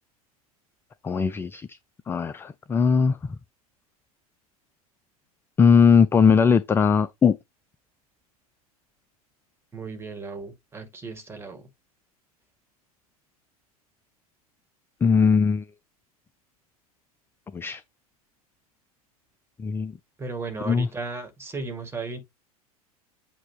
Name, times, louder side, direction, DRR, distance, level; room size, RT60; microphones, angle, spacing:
voice 1, 1.0-1.7 2.1-3.2 5.6-7.4 15.0-15.6 17.5-17.8 19.6-19.9 20.7-20.9, left 6 dB, 10° left, 0.4 m, -19 dB
voice 2, 9.7-11.7 20.2-22.2, right 3 dB, 15° right, 2.1 m, -35 dB
8.2 x 2.8 x 4.8 m
figure-of-eight pair, 80°, 19 cm